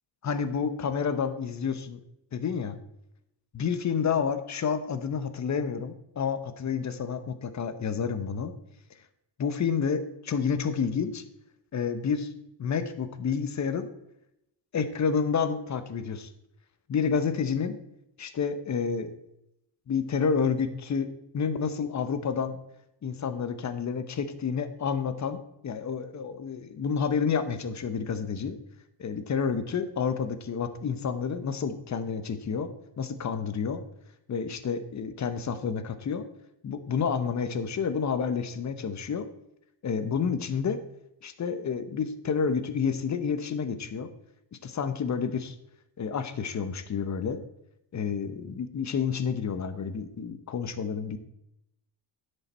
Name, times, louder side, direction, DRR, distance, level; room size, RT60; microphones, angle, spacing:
voice 1, 0.2-2.0 2.3-2.8 3.5-8.5 9.4-11.2 11.7-12.3 12.6-13.9 14.7-16.3 16.9-17.8 18.2-19.1 19.9-21.1 21.3-22.6 23.0-28.6 29.0-32.7 33.0-33.8 34.3-36.2 36.6-39.3 39.8-40.8 41.2-44.1 44.6-45.5 46.0-47.4 47.9-51.2, left 6 dB, 35° left, 11 dB, 0.9 m, -29 dB
10.5 x 6.6 x 4.2 m, 0.83 s
cardioid pair, 120°, 48 cm